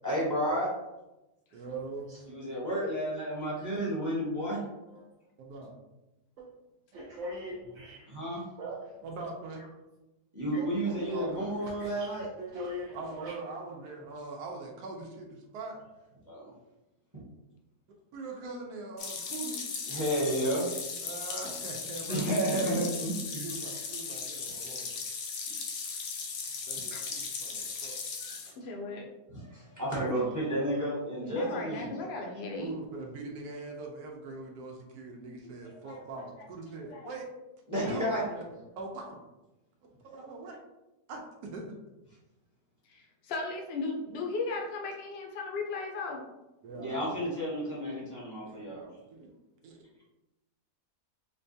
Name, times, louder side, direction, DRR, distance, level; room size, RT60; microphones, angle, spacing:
voice 1, 0.0-0.7 2.3-4.6 8.1-8.4 10.3-12.3 16.2-16.5 17.1-17.2 19.9-20.7 22.1-23.5 28.2-28.5 29.3-32.0 37.7-38.2 46.8-48.9, right 1 dB, 15° right, -7 dB, 0.8 m, -31 dB
voice 2, 1.5-2.1 5.4-5.8 9.0-9.6 12.9-15.8 18.1-19.6 21.0-23.1 23.4-24.9 26.7-28.0 29.9-30.1 32.6-37.3 37.8-39.2 39.8-40.6 41.1-41.2 41.5-41.8 46.6-46.9 48.4-48.7 49.1-49.3 49.6-49.8, right 3 dB, 80° right, 0 dB, 1.2 m, -42 dB
voice 3, 6.9-9.0 10.5-13.3, equal, 65° right, -4 dB, 0.8 m, -41 dB
sound 1, 19.0-28.5, left 5 dB, 80° left, 1.2 m, -37 dB
voice 4, 26.9-27.2 28.6-29.1 31.3-32.7 35.6-36.0 36.8-37.1 42.9-46.2, left 3 dB, 60° left, 1 dB, 0.7 m, -37 dB
4.6 x 2.2 x 2.6 m, 0.98 s
omnidirectional pair, 1.7 m